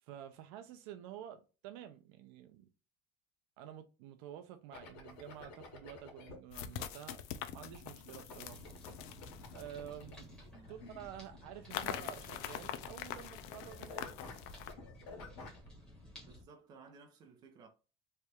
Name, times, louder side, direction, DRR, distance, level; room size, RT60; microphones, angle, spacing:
voice 1, 0.1-2.7 3.6-7.2 7.5-8.7 9.5-14.2, right 11 dB, 75° right, 0.6 m, -50 dB
sound 1, 4.7-6.4 7.6-13.2 13.5-15.7, left 3 dB, 85° left, 1.3 m, -52 dB
sound 2, 5.2-5.3 6.5-10.4 11.7-14.7, left 11 dB, 65° left, 0.4 m, -44 dB
sound 3, 8.5-16.4, equal, 5° left, 1.3 m, -55 dB
voice 2, 10.5-10.8 16.2-17.7, right 4 dB, 30° right, 0.7 m, -58 dB
3.3 x 2.4 x 4.2 m
cardioid pair, 175°, 13 cm